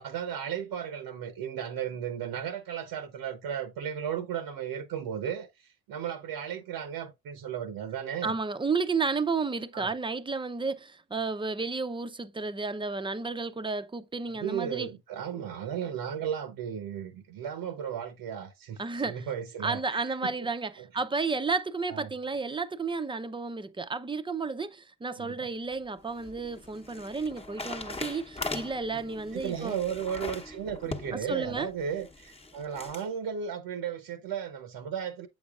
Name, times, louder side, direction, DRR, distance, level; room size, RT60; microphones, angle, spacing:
voice 1, 0.0-5.5 5.9-8.4 9.7-9.9 14.3-20.3 20.8-20.9 21.9-22.1 25.2-25.4 29.3-35.3, right 8 dB, 80° right, 1.0 m, -35 dB
voice 2, 8.2-14.9 18.8-19.3 19.6-29.8 31.1-31.7, right 4 dB, 15° right, 0.6 m, -32 dB
sound 1, 25.7-33.1, left 2 dB, 15° left, 1.0 m, -41 dB
7.9 x 5.3 x 2.4 m
cardioid pair, 75°, 37 cm